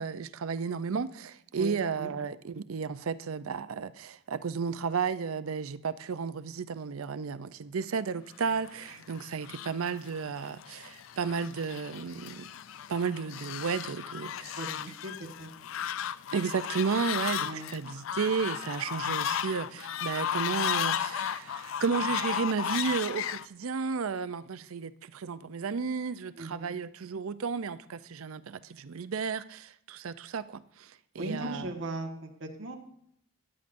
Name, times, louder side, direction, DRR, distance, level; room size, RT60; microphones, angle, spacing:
voice 1, 0.0-12.5 12.9-14.6 16.3-31.7, right 5 dB, 90° right, 0.5 m, -33 dB
voice 2, 1.5-2.1 14.6-15.5 17.4-17.7 26.4-26.7 31.1-32.8, right 1 dB, 65° right, 1.5 m, -38 dB
Fowl, 8.6-23.5, left 9 dB, 70° left, 0.4 m, -35 dB
13.5 x 9.9 x 2.6 m
head